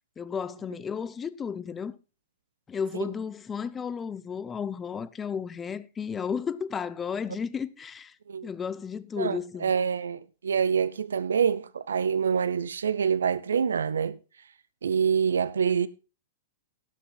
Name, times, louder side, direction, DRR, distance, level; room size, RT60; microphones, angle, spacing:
voice 1, 0.2-2.0 2.7-8.2 8.4-9.7, left 6 dB, 20° left, 0.7 m, -33 dB
voice 2, 9.2-14.2 14.8-15.9, right 7 dB, 85° right, 0.5 m, -26 dB
17.0 x 6.3 x 3.8 m
hypercardioid pair, 115°, 0 cm